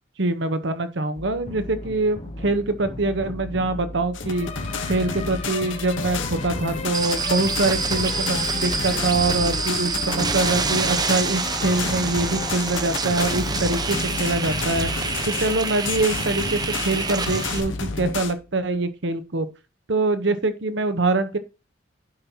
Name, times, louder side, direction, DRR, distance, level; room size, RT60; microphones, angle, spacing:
voice 1, 0.2-4.5 4.8-14.9 15.2-16.6 16.8-19.5 19.9-21.4, right 2 dB, 65° right, 1.0 m, -24 dB
sound 1, 1.2-18.8, left 1 dB, 35° left, 0.9 m, -36 dB
sound 2, 4.1-18.3, left 4 dB, 75° left, 1.1 m, -31 dB
sound 3, 6.9-17.6, right 4 dB, 20° right, 0.6 m, -27 dB
10.5 x 5.8 x 2.9 m
head